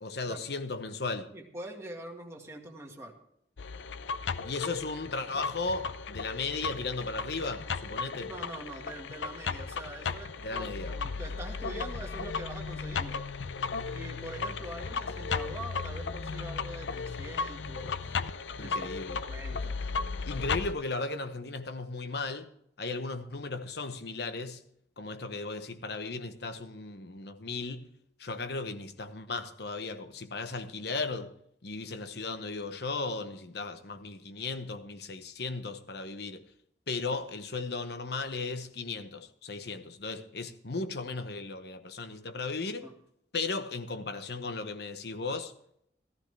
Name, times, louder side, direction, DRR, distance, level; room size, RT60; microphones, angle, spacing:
voice 1, 0.0-1.3 4.4-8.3 10.4-11.0 18.6-19.2 20.2-22.5 22.8-24.6 25.0-27.9 28.2-31.3 31.6-36.5 36.9-42.9 43.3-45.5, left 3 dB, 65° left, 1.0 m, -36 dB
voice 2, 1.3-3.2 8.1-13.2 13.9-18.2 18.6-19.8 42.8-43.0, right 1 dB, 15° right, 1.9 m, -44 dB
sound 1, 3.6-20.7, left 5 dB, 90° left, 0.6 m, -35 dB
15.0 x 14.0 x 3.4 m
head